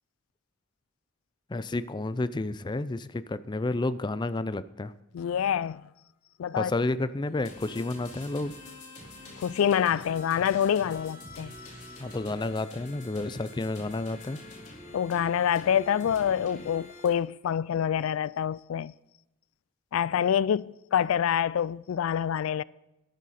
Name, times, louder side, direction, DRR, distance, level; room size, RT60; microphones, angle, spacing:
voice 1, 1.5-4.9 6.5-8.5 12.0-14.4, left 2 dB, 20° left, 0.4 m, -30 dB
voice 2, 5.1-5.8 6.4-6.7 9.4-11.5 14.9-18.9 19.9-22.6, left 8 dB, 85° left, 0.3 m, -26 dB
sound 1, 7.4-17.1, left 2 dB, 40° left, 3.8 m, -46 dB
13.5 x 11.5 x 4.2 m
head